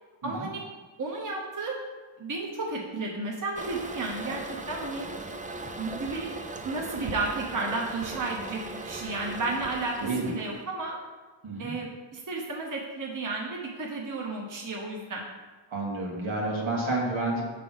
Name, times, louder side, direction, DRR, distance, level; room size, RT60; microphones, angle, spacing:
voice 1, 0.2-0.6 1.0-1.8 2.2-5.1 5.8-6.3 6.6-11.0 11.6-15.2 16.9-17.0, right 3 dB, 40° right, -1 dB, 0.9 m, -33 dB
Toilet flush, 3.5-10.6, right 2 dB, 20° right, 0.4 m, -39 dB
voice 2, 10.0-10.3 11.4-11.7 15.7-17.4, right 2 dB, 75° right, -3 dB, 1.5 m, -30 dB
5.9 x 3.4 x 5.4 m, 1.3 s
wide cardioid pair, 75°, 47 cm